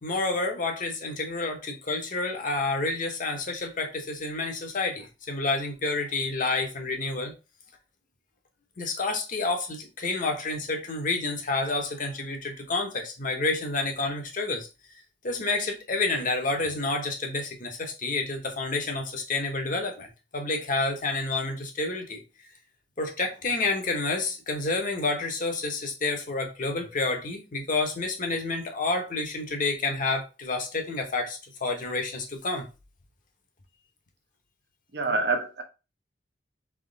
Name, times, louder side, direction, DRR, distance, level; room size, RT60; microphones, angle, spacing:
voice 1, 0.0-7.3 8.8-14.7 15.2-20.1 20.3-22.2 23.0-32.7, left 3 dB, 50° left, 1.0 m, -29 dB
voice 2, 34.9-35.6, right 3 dB, 65° right, 0.8 m, -26 dB
3.6 x 3.0 x 3.9 m
head